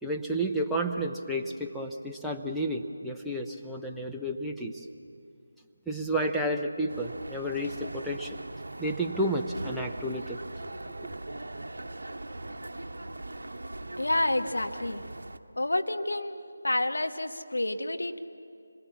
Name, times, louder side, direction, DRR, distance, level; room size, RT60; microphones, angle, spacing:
voice 1, 0.0-4.9 5.9-8.4 8.8-10.4, right 1 dB, ahead, -2 dB, 0.8 m, -31 dB
sound 1, 6.9-15.4, right 2 dB, 65° right, 1.0 m, -40 dB
voice 2, 14.0-15.0 15.6-18.2, left 1 dB, 70° left, 7 dB, 1.4 m, -29 dB
26.0 x 22.0 x 7.3 m, 2.4 s
figure-of-eight pair, 160°, 0 cm